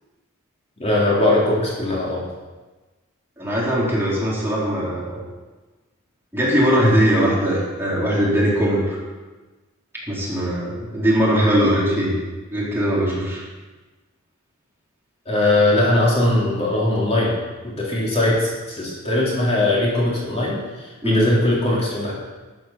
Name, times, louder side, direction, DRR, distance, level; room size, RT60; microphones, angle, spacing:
voice 1, 0.8-2.2 15.2-17.4 17.6-22.1, left 1 dB, 30° left, -5 dB, 3.1 m, -20 dB
voice 2, 3.4-5.2 6.3-9.0 10.1-12.1 12.5-13.4 21.0-21.3, equal, 10° right, -6 dB, 3.6 m, -20 dB
12.0 x 8.7 x 6.0 m, 1.2 s
head